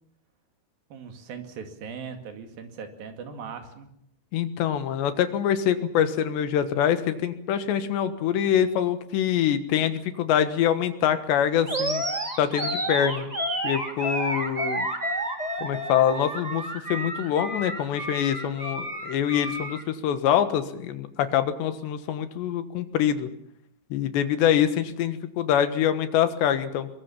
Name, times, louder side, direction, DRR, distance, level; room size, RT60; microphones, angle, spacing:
voice 1, 0.9-3.9, right 6 dB, 55° right, 5 dB, 3.7 m, -39 dB
voice 2, 4.3-12.1 12.4-13.3 13.6-14.9 15.6-23.3 23.9-26.9, left 9 dB, 75° left, 10 dB, 3.5 m, -25 dB
Animal, 11.7-19.8, right 1 dB, 15° right, 1.3 m, -30 dB
22.5 x 21.5 x 7.2 m, 0.73 s
omnidirectional pair, 5.2 m